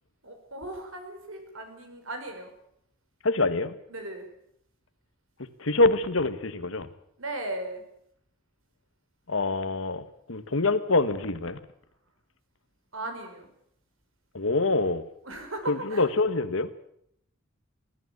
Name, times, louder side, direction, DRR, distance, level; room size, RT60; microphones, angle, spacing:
voice 1, 0.2-2.5 3.9-4.3 7.2-7.8 12.9-13.5 15.2-16.2, right 1 dB, 80° right, 6 dB, 5.3 m, -37 dB
voice 2, 3.2-3.7 5.6-6.9 9.3-11.6 14.3-15.0 15.7-16.7, left 3 dB, 75° left, 12 dB, 1.5 m, -25 dB
22.0 x 14.0 x 9.7 m, 0.73 s
head